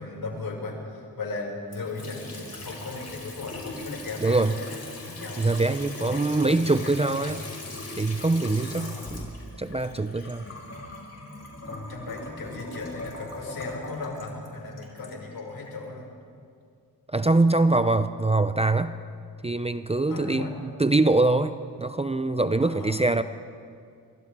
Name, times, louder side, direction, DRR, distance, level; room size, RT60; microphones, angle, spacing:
voice 1, 0.0-5.4 6.0-7.4 8.8-9.1 11.7-16.1 20.1-20.5 22.6-23.0, left 3 dB, 65° left, -1 dB, 6.2 m, -37 dB
Water tap faucet / Sink (filling or washing) / Trickle dribble, 1.7-15.8, left 2 dB, 40° left, 5.5 m, -40 dB
voice 2, 4.2-4.5 5.4-7.4 8.0-9.3 9.6-10.5 17.1-18.9 19.4-23.2, right 2 dB, 15° right, 11 dB, 0.6 m, -23 dB
29.0 x 24.5 x 3.7 m, 2.2 s
cardioid pair, 70°, 39 cm